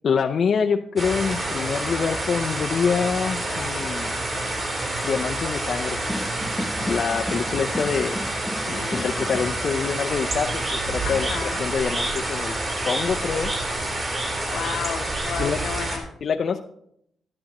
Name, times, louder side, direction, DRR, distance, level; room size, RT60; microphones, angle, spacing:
voice 1, 0.0-4.1 5.0-6.0 6.8-8.3 8.7-13.5 15.4-15.6 16.2-16.6, left 6 dB, 55° left, 3 dB, 0.5 m, -26 dB
sound 1, 1.0-16.0, right 1 dB, 35° right, 3.7 m, -28 dB
sound 2, 6.1-9.5, left 1 dB, 5° left, 0.9 m, -34 dB
voice 2, 8.7-9.1 11.0-11.7 14.5-16.1, left 8 dB, 85° left, 4 dB, 1.1 m, -33 dB
sound 3, 10.1-15.8, right 2 dB, 50° right, 2.2 m, -33 dB
12.5 x 10.5 x 3.0 m, 0.74 s
cardioid pair, 95°, 0 cm